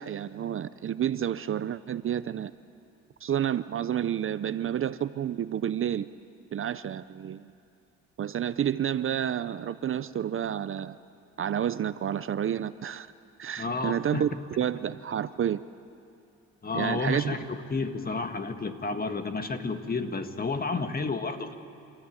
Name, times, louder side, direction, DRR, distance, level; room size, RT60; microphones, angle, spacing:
voice 1, 0.0-2.5 3.2-6.1 6.5-7.5 8.2-11.0 11.4-13.1 13.4-14.3 14.6-15.6 16.7-17.5, right 9 dB, 45° right, 14 dB, 0.6 m, -30 dB
voice 2, 13.6-14.2 16.6-21.5, left 3 dB, 30° left, 8 dB, 1.6 m, -31 dB
29.5 x 14.0 x 9.8 m, 2.6 s
cardioid pair, 90°, 30 cm